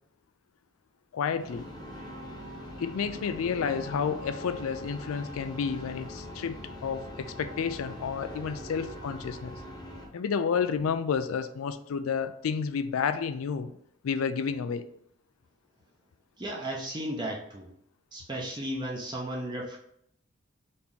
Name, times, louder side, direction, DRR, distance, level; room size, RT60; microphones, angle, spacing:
voice 1, 1.1-1.7 2.8-9.6 10.1-13.7 14.0-14.9, left 6 dB, 75° left, 11 dB, 0.4 m, -30 dB
sound 1, 1.4-10.1, equal, 20° left, 0.9 m, -42 dB
voice 2, 16.4-17.7 18.1-19.8, right 1 dB, 20° right, -2 dB, 0.6 m, -34 dB
4.2 x 2.9 x 3.6 m, 0.72 s
head